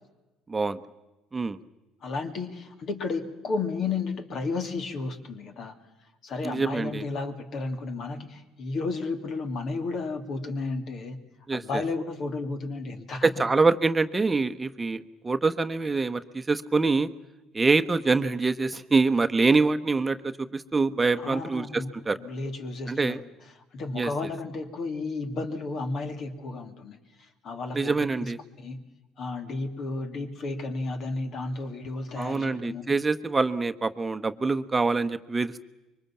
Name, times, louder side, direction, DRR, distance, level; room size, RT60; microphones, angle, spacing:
voice 1, 2.0-5.7 6.2-11.2 11.5-13.3 21.2-21.9 22.1-23.2 23.6-28.3 28.6-28.8 29.2-32.8, left 3 dB, 50° left, 6 dB, 2.8 m, -33 dB
voice 2, 6.4-7.0 11.5-11.8 13.4-17.1 17.5-22.2 22.9-23.2 24.0-24.1 27.7-28.4 32.2-35.6, right 3 dB, 20° right, 9 dB, 1.1 m, -25 dB
26.0 x 23.5 x 7.4 m, 1.1 s
hypercardioid pair, 55°, 0 cm